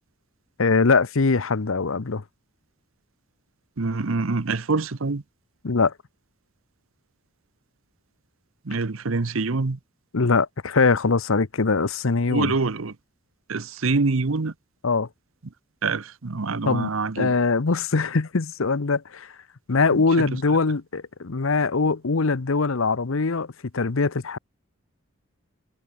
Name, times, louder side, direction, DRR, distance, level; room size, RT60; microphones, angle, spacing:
voice 1, 0.6-2.2 5.6-5.9 10.1-12.6 14.8-15.1 16.6-16.9 17.2-19.3 19.7-24.4, left 4 dB, 75° left, 0.8 m, -22 dB
voice 2, 3.8-5.2 8.7-9.8 12.3-12.9 13.5-14.5 15.8-17.3 19.9-20.3, right 3 dB, 75° right, 0.9 m, -25 dB
head